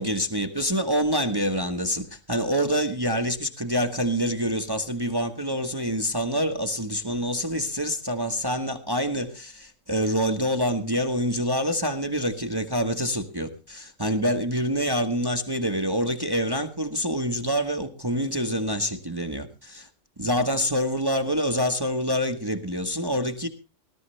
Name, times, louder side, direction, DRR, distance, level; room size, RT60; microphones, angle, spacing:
voice 1, 0.0-19.9 20.2-23.5, equal, 20° right, 6 dB, 1.1 m, -26 dB
20.0 x 12.5 x 3.2 m, 0.31 s
omnidirectional pair, 1.3 m